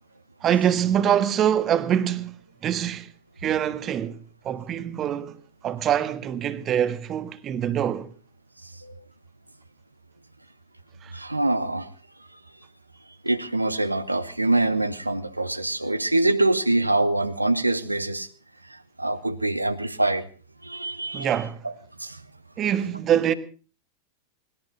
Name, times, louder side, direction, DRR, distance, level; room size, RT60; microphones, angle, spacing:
voice 1, 0.4-3.1 3.4-8.1 11.0-11.1 21.1-21.6 22.6-23.3, right 9 dB, 30° right, 1.6 m, -24 dB
voice 2, 11.1-11.9 13.2-18.3 18.7-20.3 20.6-21.3 21.6-21.7 22.0-22.2, right 2 dB, 85° right, 1.2 m, -24 dB
20.0 x 17.5 x 3.9 m
figure-of-eight pair, 90°, 0 cm